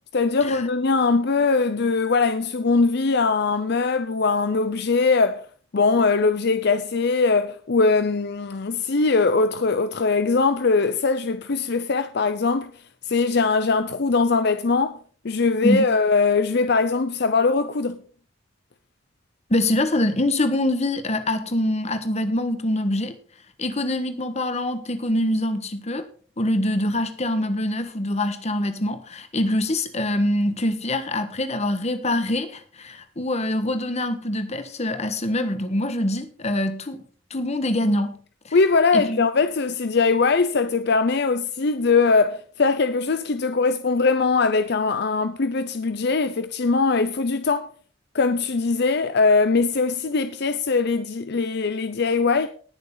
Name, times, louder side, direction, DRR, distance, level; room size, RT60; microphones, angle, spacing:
voice 1, 0.1-5.4 5.7-12.7 13.1-15.0 15.2-18.0 38.5-47.7 48.1-52.5, left 4 dB, 60° left, 0.7 m, -21 dB
voice 2, 15.6-16.0 19.5-23.2 23.6-26.0 26.4-37.0 37.3-38.2 38.4-38.6 38.9-39.2, left 1 dB, 35° left, 1.4 m, -24 dB
19.5 x 6.6 x 3.9 m
head